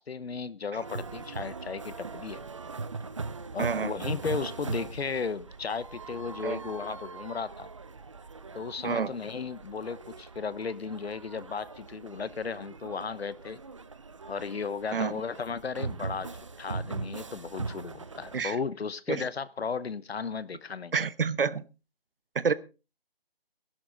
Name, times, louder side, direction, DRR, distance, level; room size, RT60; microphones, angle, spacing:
voice 1, 0.0-2.5 3.5-7.7 8.5-13.6 14.3-16.3 16.6-20.9, left 5 dB, 90° left, 1.0 m, -35 dB
sound 1, 0.8-18.4, right 4 dB, 30° right, 0.7 m, -40 dB
voice 2, 3.6-3.9 6.4-6.6 8.8-9.1 14.9-15.2 18.3-18.6 19.1-19.2 20.9-21.6 22.3-22.5, right 5 dB, 65° right, 1.1 m, -28 dB
16.5 x 12.0 x 3.9 m
hypercardioid pair, 170°, 30 cm